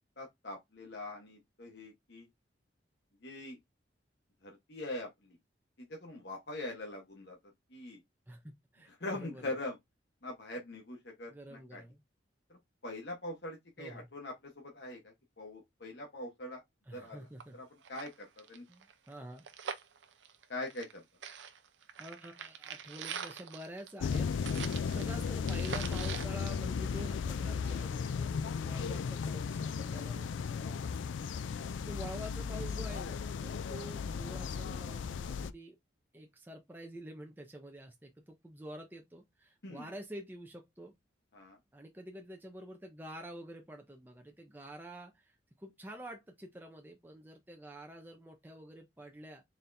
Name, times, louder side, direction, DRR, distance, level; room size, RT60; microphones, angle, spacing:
voice 1, 0.2-2.3 3.2-3.6 4.4-5.1 5.9-7.4 7.7-8.0 9.0-9.8 10.2-11.8 12.5-16.6 16.9-17.3 17.5-18.6 20.5-21.0 31.4-31.7 39.6-39.9 41.3-41.6, left 2 dB, 60° left, 1.0 m, -43 dB
voice 2, 8.3-9.5 11.3-12.0 13.8-14.1 16.9-17.6 18.7-19.4 22.0-24.7 24.9-31.1 31.4-35.8 36.1-40.9 41.7-49.4, right 1 dB, 10° right, 0.6 m, -48 dB
sound 1, 17.0-17.1 17.4-17.5 17.8-21.0 21.2-27.3 27.7-27.8, right 7 dB, 75° right, 0.7 m, -44 dB
sound 2, 24.0-35.5, left 6 dB, 80° left, 0.3 m, -35 dB
4.2 x 3.4 x 2.6 m
head